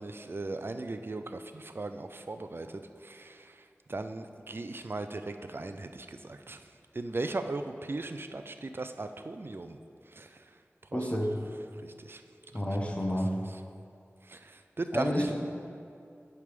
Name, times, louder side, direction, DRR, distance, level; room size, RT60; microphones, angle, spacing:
voice 1, 0.0-3.6 3.9-6.6 6.9-9.8 10.1-10.4 10.9-11.0 11.8-12.2 14.3-15.3, right 2 dB, 50° right, 8 dB, 0.4 m, -38 dB
voice 2, 10.9-11.3 12.5-13.4 14.9-15.3, equal, 25° left, 0 dB, 0.9 m, -29 dB
9.7 x 3.4 x 5.1 m, 2.4 s
wide cardioid pair, 55°, 5 cm